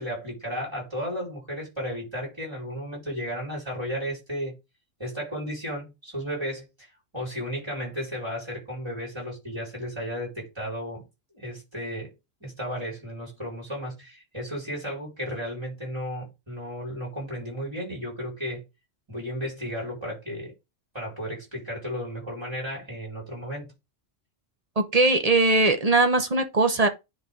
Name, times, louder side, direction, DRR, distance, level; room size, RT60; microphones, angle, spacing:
voice 1, 0.0-4.5 5.0-6.6 7.1-11.0 11.3-12.1 12.4-18.6 19.1-20.5 20.9-23.7, equal, 20° right, 4.3 m, -34 dB
voice 2, 24.8-26.9, right 2 dB, 35° right, 0.7 m, -20 dB
10.0 x 3.4 x 3.7 m
omnidirectional pair, 1.3 m